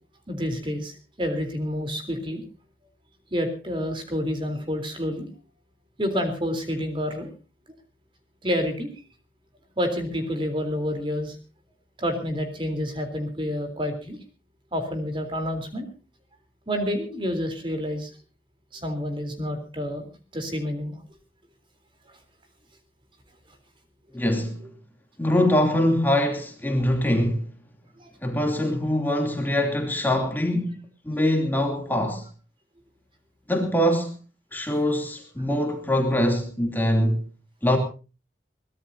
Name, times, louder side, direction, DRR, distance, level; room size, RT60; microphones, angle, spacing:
voice 1, 0.3-2.4 3.3-5.3 6.0-7.3 8.4-8.9 9.8-11.4 12.0-14.2 14.7-15.9 16.7-18.1 18.7-20.0 20.3-21.0 22.1-22.2 28.0-28.1, equal, 30° right, 3.7 m, -28 dB
voice 2, 24.1-24.6 25.2-27.4 28.2-32.2 33.5-34.2 34.5-37.2 37.6-37.8, left 1 dB, 10° left, 2.9 m, -23 dB
23.5 x 17.5 x 2.8 m
head